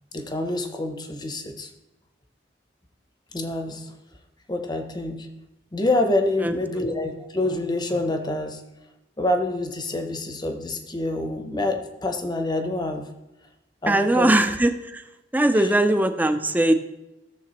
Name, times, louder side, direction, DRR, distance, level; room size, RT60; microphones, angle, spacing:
voice 1, 0.1-1.7 3.3-3.9 4.5-5.3 5.7-8.6 9.2-13.1 13.8-14.3 15.5-15.7, left 2 dB, 25° left, 6 dB, 0.8 m, -26 dB
voice 2, 6.4-6.8 13.9-15.0 15.3-16.7, right 1 dB, 10° right, 9 dB, 0.5 m, -21 dB
15.0 x 6.8 x 3.0 m, 0.98 s
head